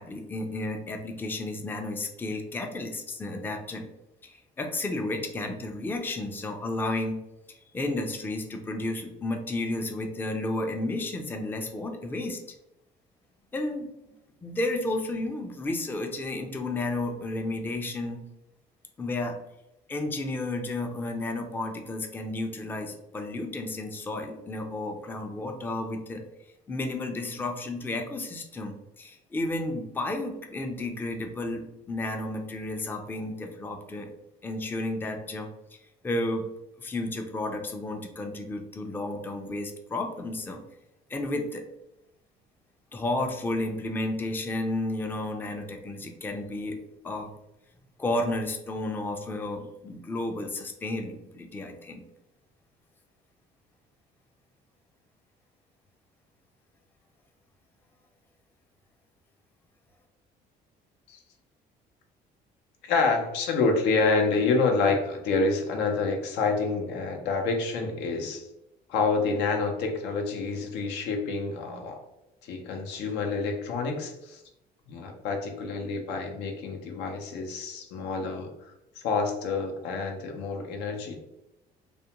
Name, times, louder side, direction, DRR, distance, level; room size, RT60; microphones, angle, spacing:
voice 1, 0.0-3.8 4.2-7.2 7.5-12.4 13.5-13.9 14.4-18.2 19.0-19.4 19.9-26.2 26.7-34.1 34.4-35.8 36.0-36.4 36.8-40.6 41.1-41.6 42.9-46.8 47.0-47.3 48.0-52.0, left 2 dB, 10° left, 4 dB, 0.3 m, -32 dB
voice 2, 62.8-68.5 68.9-72.0 72.4-74.4 74.9-78.5 79.0-81.2, left 4 dB, 85° left, 3 dB, 0.6 m, -28 dB
2.4 x 2.1 x 2.8 m, 0.89 s
cardioid pair, 110°, 17 cm